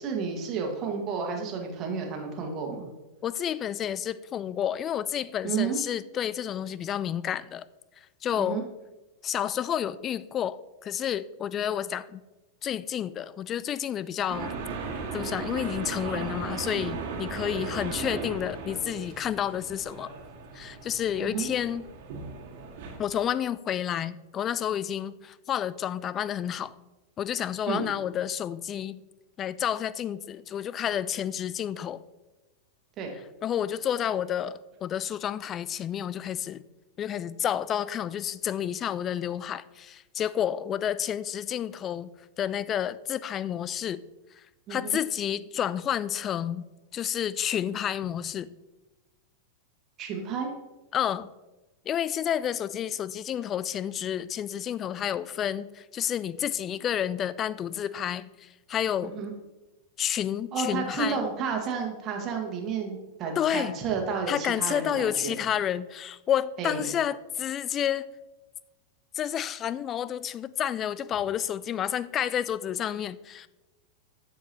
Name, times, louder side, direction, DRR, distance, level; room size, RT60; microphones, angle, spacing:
voice 1, 0.0-2.9 5.4-5.8 8.3-8.6 21.2-21.5 27.7-27.8 33.0-33.1 44.7-45.0 50.0-50.5 59.0-59.3 60.5-65.4 66.6-66.8, right 5 dB, 35° right, 1 dB, 1.6 m, -31 dB
voice 2, 3.2-7.6 8.2-8.6 9.2-12.2 12.6-14.5 14.9-20.1 20.5-21.9 23.0-26.7 27.2-29.0 29.4-32.0 33.4-36.6 37.0-42.1 42.4-44.0 44.7-46.6 46.9-48.5 50.9-51.3 51.9-59.2 60.0-61.2 63.4-63.7 64.3-68.1 69.1-73.5, left 10 dB, 30° left, 17 dB, 0.3 m, -30 dB
sound 1, 14.3-23.0, right 5 dB, 50° right, 1.8 m, -37 dB
13.5 x 4.7 x 2.9 m, 1.1 s
figure-of-eight pair, 90°, 0 cm